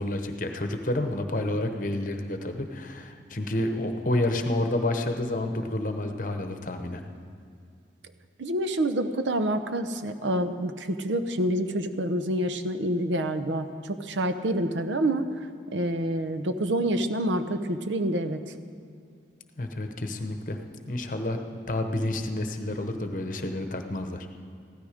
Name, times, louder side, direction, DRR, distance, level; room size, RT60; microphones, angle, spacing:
voice 1, 0.0-7.0 19.6-20.6 20.9-21.4 21.7-24.3, left 1 dB, 45° left, 6 dB, 0.9 m, -29 dB
voice 2, 8.4-15.3 15.7-18.4, right 1 dB, 90° right, 9 dB, 0.8 m, -27 dB
15.5 x 13.0 x 5.1 m, 2.3 s
head